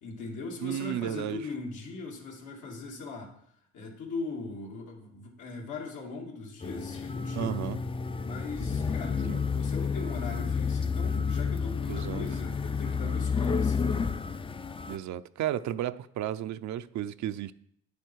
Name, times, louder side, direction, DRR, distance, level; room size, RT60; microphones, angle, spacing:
voice 1, 0.0-3.3 3.7-7.7 8.2-14.1, left 3 dB, 80° left, 2.6 m, -39 dB
voice 2, 0.6-1.5 7.4-7.8 9.3-9.4 11.9-12.3 14.9-17.5, right 11 dB, 70° right, 0.6 m, -33 dB
sound 1, 6.6-15.0, left 5 dB, 20° left, 0.4 m, -30 dB
sound 2, 6.9-9.5, left 2 dB, 45° left, 1.3 m, -39 dB
10.0 x 8.3 x 4.6 m
cardioid pair, 90°, 30 cm